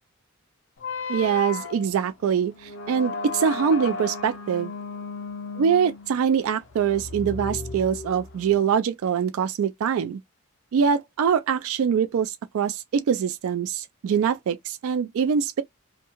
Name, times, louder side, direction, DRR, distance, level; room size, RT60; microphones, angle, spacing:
sound 1, 0.8-8.6, left 4 dB, 55° left, 0.4 m, -34 dB
voice 1, 1.1-4.7 5.6-10.2 10.7-15.6, right 7 dB, 75° right, 0.3 m, -24 dB
2.7 x 2.2 x 2.8 m
head